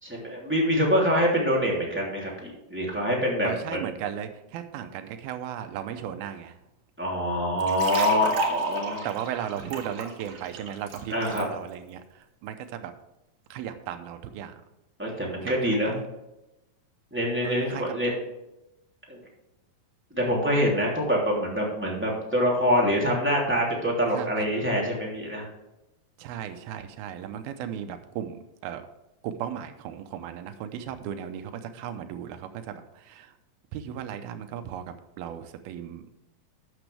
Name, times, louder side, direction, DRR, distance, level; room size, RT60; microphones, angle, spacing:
voice 1, 0.0-3.8 7.0-9.0 11.1-11.5 15.0-15.9 17.1-18.1 19.1-19.2 20.2-25.5, equal, 5° right, -4 dB, 2.4 m, -25 dB
voice 2, 3.4-6.6 9.0-12.9 13.5-14.6 15.4-16.0 17.4-17.8 24.1-24.5 26.2-28.8 29.2-33.3 33.7-36.2, right 9 dB, 90° right, 8 dB, 2.7 m, -36 dB
sound 1, 7.6-11.4, right 4 dB, 60° right, 3.0 m, -34 dB
12.5 x 8.5 x 3.4 m, 0.92 s
omnidirectional pair, 4.2 m